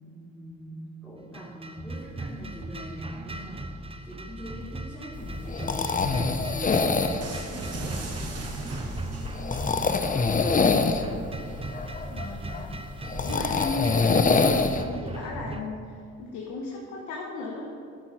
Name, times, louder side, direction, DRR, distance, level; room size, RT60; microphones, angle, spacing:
voice 1, 0.0-9.2 9.6-11.2, equal, 5° left, -9 dB, 3.1 m, -42 dB
sound 1, 1.3-15.6, right 2 dB, 20° right, 0.7 m, -38 dB
sound 2, 5.2-14.8, left 4 dB, 25° left, 0.8 m, -26 dB
sound 3, 7.2-9.7, right 3 dB, 55° right, 1.9 m, -38 dB
voice 2, 12.1-12.8 13.2-17.7, left 3 dB, 85° left, -1 dB, 1.4 m, -36 dB
11.5 x 10.0 x 4.3 m, 2.3 s
cardioid pair, 90°, 30 cm